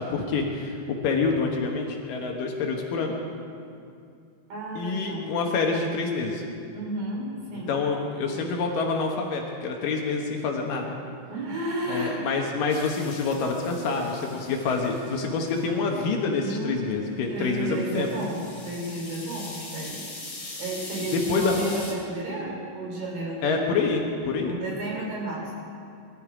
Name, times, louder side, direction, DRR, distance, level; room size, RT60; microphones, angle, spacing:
voice 1, 0.0-3.1 4.8-6.4 7.7-11.0 11.9-18.1 21.1-21.5 23.4-24.6, left 4 dB, 75° left, 1 dB, 2.9 m, -27 dB
voice 2, 4.5-5.3 6.7-7.8 11.3-12.2 13.9-14.2 16.3-16.8 17.3-20.1 20.6-23.7 24.5-25.5, right 1 dB, 90° right, -2 dB, 5.3 m, -32 dB
sound 1, 12.7-15.7 17.5-21.9, left 2 dB, 35° left, 3.3 m, -41 dB
22.5 x 12.5 x 5.0 m, 2.4 s
omnidirectional pair, 3.9 m